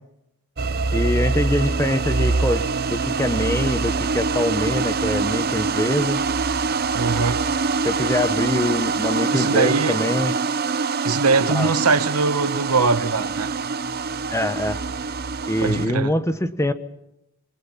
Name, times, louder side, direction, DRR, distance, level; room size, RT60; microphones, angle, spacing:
sound 1, 0.6-15.9, right 4 dB, 45° right, 0.7 m, -24 dB
voice 1, 0.9-6.2 7.8-10.3 11.5-11.7 14.3-14.8 15.5-16.7, left 1 dB, 15° left, 1.1 m, -24 dB
voice 2, 6.9-7.5 9.3-10.0 11.0-13.5 15.6-16.2, right 4 dB, 90° right, 1.2 m, -21 dB
27.0 x 22.0 x 5.7 m
head